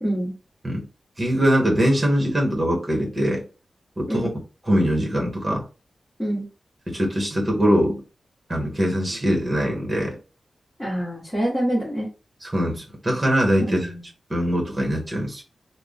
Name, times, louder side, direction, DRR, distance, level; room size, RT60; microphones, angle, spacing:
voice 1, 0.0-0.3 4.1-4.3 6.2-6.4 10.8-12.1 13.6-14.0, equal, 15° left, -7 dB, 1.6 m, -25 dB
voice 2, 1.2-3.4 4.0-4.3 4.7-5.6 6.9-8.0 8.5-10.1 12.4-13.9 14.3-15.4, equal, 20° right, 0 dB, 1.3 m, -22 dB
3.5 x 2.2 x 3.7 m, 0.33 s
wide cardioid pair, 125°, 0 cm